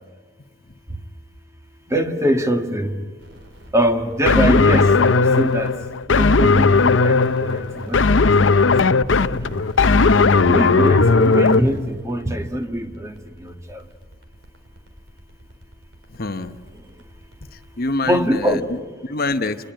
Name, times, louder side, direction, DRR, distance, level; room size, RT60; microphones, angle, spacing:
voice 1, 1.9-2.9 3.7-5.7 6.1-8.5 9.3-9.6 10.5-13.1 13.4-13.8 18.0-18.6, equal, 15° right, 1.7 m, -23 dB
sound 1, 3.2-18.8, equal, 75° right, 4.2 m, -46 dB
sound 2, 4.3-11.6, left 4 dB, 80° left, 0.7 m, -16 dB
voice 2, 16.1-16.6 17.5-19.7, left 2 dB, 50° left, 0.9 m, -26 dB
28.0 x 21.0 x 8.9 m
head